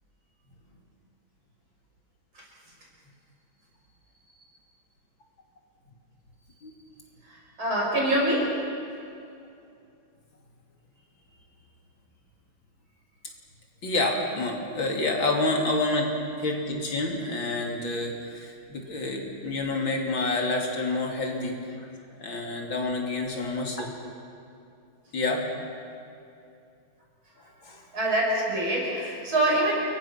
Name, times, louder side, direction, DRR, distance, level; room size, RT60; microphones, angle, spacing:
voice 1, 7.3-8.5 27.9-29.7, right 1 dB, 80° right, -3 dB, 6.8 m, -25 dB
voice 2, 13.8-16.1 16.4-21.6 22.2-23.9 25.1-25.5 27.6-27.8, left 2 dB, 70° left, 1 dB, 3.6 m, -28 dB
29.0 x 22.5 x 5.9 m, 2.6 s
omnidirectional pair, 2.2 m